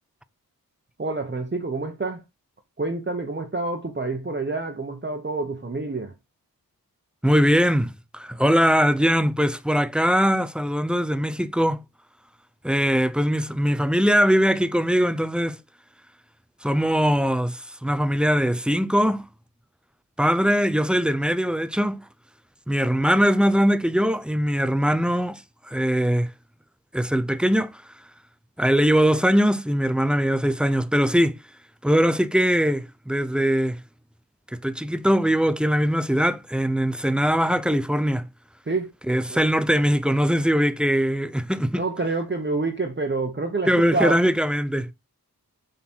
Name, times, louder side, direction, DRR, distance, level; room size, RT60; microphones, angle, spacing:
voice 1, 1.0-2.2 2.8-6.1 38.7-38.9 39.3-39.4 41.7-44.2, right 3 dB, 30° right, 1.0 m, -27 dB
voice 2, 7.2-11.8 12.6-15.6 16.6-19.2 20.2-22.0 22.7-25.4 25.7-26.3 26.9-27.8 28.6-31.4 31.8-33.8 34.5-38.3 39.1-41.8 43.7-44.9, equal, 5° right, 0.5 m, -21 dB
7.1 x 4.0 x 4.4 m
wide cardioid pair, 75°, 36 cm